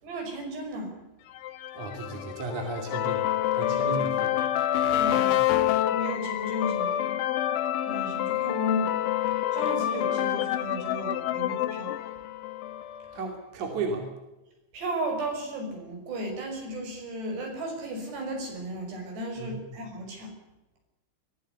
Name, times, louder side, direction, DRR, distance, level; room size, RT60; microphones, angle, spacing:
voice 1, 0.0-1.0 3.6-4.1 4.9-5.4 5.9-7.1 7.9-8.9 9.5-11.9 14.7-20.3, equal, 65° right, 2 dB, 7.7 m, -34 dB
sound 1, 1.4-13.1, left 12 dB, 90° left, 3.6 m, -27 dB
voice 2, 1.7-3.3 3.5-4.4 13.1-14.1 19.4-19.6, right 3 dB, 45° right, 3 dB, 3.8 m, -34 dB
22.5 x 15.5 x 8.1 m, 1.0 s
omnidirectional pair, 5.3 m